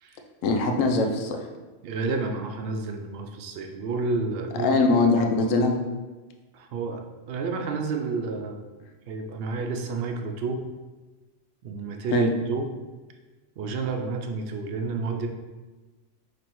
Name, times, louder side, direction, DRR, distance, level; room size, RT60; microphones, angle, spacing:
voice 1, 0.4-1.4 4.6-5.8 12.1-12.3, left 3 dB, 85° left, 4 dB, 1.0 m, -22 dB
voice 2, 1.8-4.8 6.5-8.7 9.1-10.6 11.6-12.7 13.6-15.3, right 4 dB, 65° right, 4 dB, 0.7 m, -30 dB
5.1 x 3.3 x 3.0 m, 1.2 s
omnidirectional pair, 1.3 m